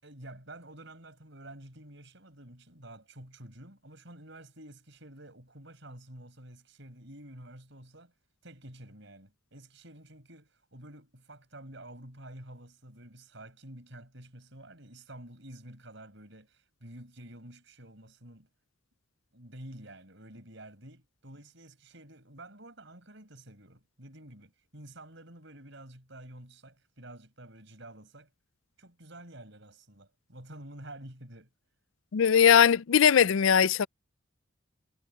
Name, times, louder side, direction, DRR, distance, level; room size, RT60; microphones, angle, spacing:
voice 1, 0.0-8.1 8.4-18.5 19.3-28.3 28.8-31.5, right 1 dB, 60° right, 6.8 m, -49 dB
voice 2, 32.1-33.9, left 8 dB, 75° left, 0.4 m, -20 dB
head